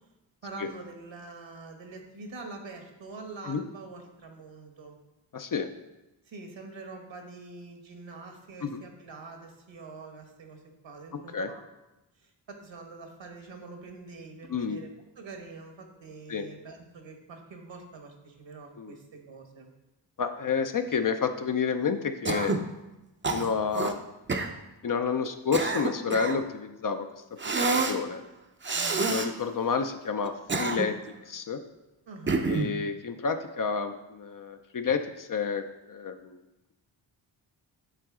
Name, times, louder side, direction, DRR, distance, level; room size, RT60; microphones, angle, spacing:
voice 1, 0.4-5.0 6.3-11.6 12.2-14.9 15.2-19.7 28.7-29.1 32.1-32.5, right 3 dB, 65° right, 4 dB, 1.2 m, -45 dB
voice 2, 5.3-5.7 8.6-8.8 11.3-11.5 14.5-14.8 16.3-16.5 18.8-19.0 20.2-22.6 23.3-24.0 24.8-27.1 27.5-28.2 29.1-30.9 31.3-31.6 32.5-36.4, left 6 dB, 45° left, 8 dB, 0.5 m, -30 dB
Cough, 22.3-22.7 23.2-23.9 24.3-24.5 25.3-26.4 27.4-28.0 28.6-29.3 30.3-31.1 32.3-32.8, right 3 dB, 25° right, 0.6 m, -28 dB
7.4 x 3.9 x 3.7 m, 1.0 s
cardioid pair, 45°, 49 cm